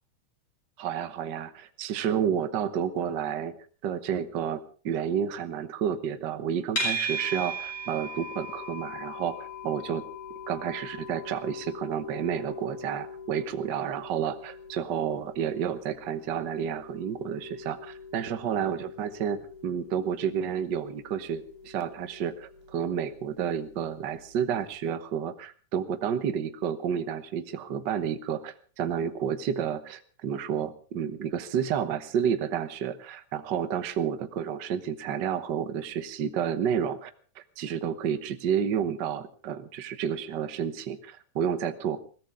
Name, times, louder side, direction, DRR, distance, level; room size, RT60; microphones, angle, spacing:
voice 1, 0.8-3.5 3.8-10.0 10.5-37.1 37.6-42.0, right 8 dB, 90° right, 10 dB, 0.9 m, -30 dB
sound 1, 6.8-24.0, right 1 dB, 35° left, 7.0 m, -39 dB
21.0 x 17.0 x 3.6 m, 0.40 s
omnidirectional pair, 3.6 m